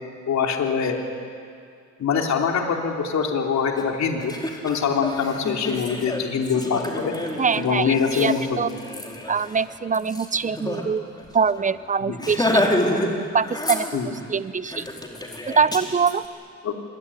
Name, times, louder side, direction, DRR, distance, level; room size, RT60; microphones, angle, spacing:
voice 1, 0.3-1.0 2.0-4.3 4.6-7.1 7.5-8.7 12.0-12.2 13.9-14.1 16.6-16.8, left 6 dB, 65° left, 2 dB, 3.4 m, -24 dB
Laughter, 3.7-3.8 4.2-10.8 11.2-11.3 11.6-11.8 12.2-13.1 13.4-14.2 14.7-16.1, left 1 dB, 15° left, 4.5 m, -28 dB
voice 2, 7.4-8.7 9.3-11.0 11.3-12.6 13.3-14.9 15.5-16.3, right 5 dB, 25° right, 15 dB, 0.9 m, -24 dB
25.5 x 21.5 x 9.9 m, 2.2 s
cardioid pair, 90°, 30 cm